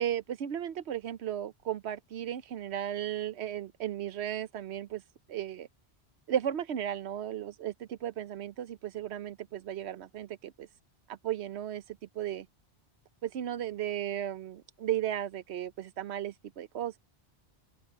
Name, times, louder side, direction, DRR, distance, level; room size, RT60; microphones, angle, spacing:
voice 1, 0.0-5.0 5.3-5.7 6.3-10.7 11.1-12.5 13.2-17.0, right 11 dB, 90° right, 1.0 m, -35 dB
open air
omnidirectional pair, 1.1 m